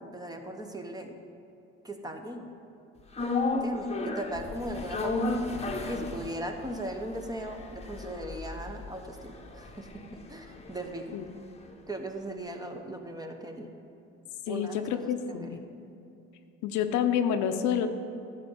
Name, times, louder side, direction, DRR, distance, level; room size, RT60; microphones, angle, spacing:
voice 1, 0.0-1.1 1.8-2.5 3.5-5.3 5.9-9.9 10.3-11.2 11.9-13.7 14.5-15.1 15.4-15.6, right 1 dB, 15° right, 4 dB, 1.0 m, -38 dB
sound 1, 3.1-11.4 11.7-11.8, left 3 dB, 20° left, 1.0 m, -34 dB
voice 2, 14.5-15.6 16.6-17.9, left 8 dB, 75° left, 8 dB, 0.7 m, -28 dB
11.5 x 4.2 x 7.0 m, 2.8 s
supercardioid pair, 80°, 29 cm